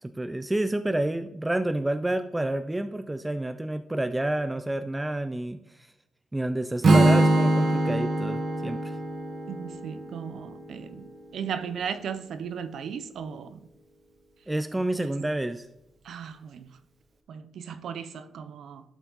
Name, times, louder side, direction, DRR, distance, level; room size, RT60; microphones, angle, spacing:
voice 1, 0.0-5.9 6.3-9.0 14.5-15.7, right 1 dB, 10° right, 0.4 m, -29 dB
Strum, 6.8-11.0, right 2 dB, 50° right, 1.0 m, -23 dB
voice 2, 9.5-11.0 11.3-13.6 16.0-16.7 17.3-18.8, right 7 dB, 75° right, 0.6 m, -36 dB
11.5 x 4.7 x 3.9 m
cardioid pair, 95°, 0 cm